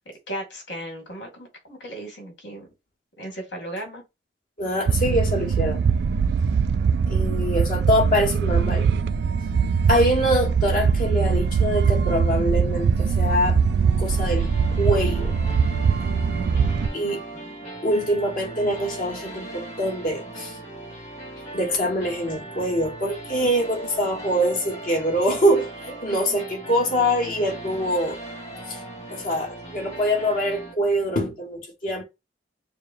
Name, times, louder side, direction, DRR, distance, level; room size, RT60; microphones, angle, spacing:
voice 1, 0.3-2.7 3.2-4.0 16.4-17.5, right 1 dB, 75° left, 2.2 m, -37 dB
voice 2, 4.6-5.8 7.1-8.9 9.9-13.6 14.0-14.5 14.8-15.3 16.9-17.2 17.8-20.6 21.5-28.2 28.7-28.8 29.1-32.0, equal, 50° left, 1.4 m, -24 dB
sound 1, 4.9-16.9, right 5 dB, 60° right, 0.3 m, -22 dB
sound 2, 13.3-30.7, right 2 dB, 35° left, 1.9 m, -38 dB
6.6 x 2.2 x 2.6 m
head